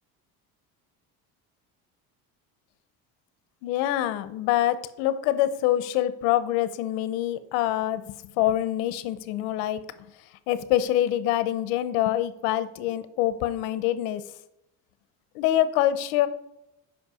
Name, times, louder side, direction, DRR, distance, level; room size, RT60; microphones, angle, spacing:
voice 1, 3.6-9.8 10.5-14.2 15.3-16.3, left 13 dB, 80° left, 14 dB, 0.8 m, -25 dB
8.3 x 5.7 x 4.9 m, 0.83 s
cardioid pair, 155°, 36 cm